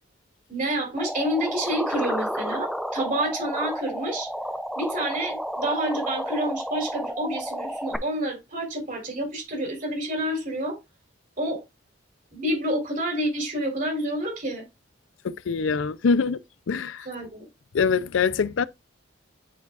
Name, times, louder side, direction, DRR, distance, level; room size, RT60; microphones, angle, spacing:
voice 1, 0.5-4.3 4.7-10.8 11.4-11.6 12.3-14.6 17.0-17.5, right 1 dB, 45° right, 3.4 m, -28 dB
sound 1, 1.0-8.0, equal, ahead, 0.5 m, -31 dB
voice 2, 15.2-16.4 16.7-17.1 17.7-18.7, left 5 dB, 85° left, 0.4 m, -24 dB
9.1 x 4.7 x 2.4 m
head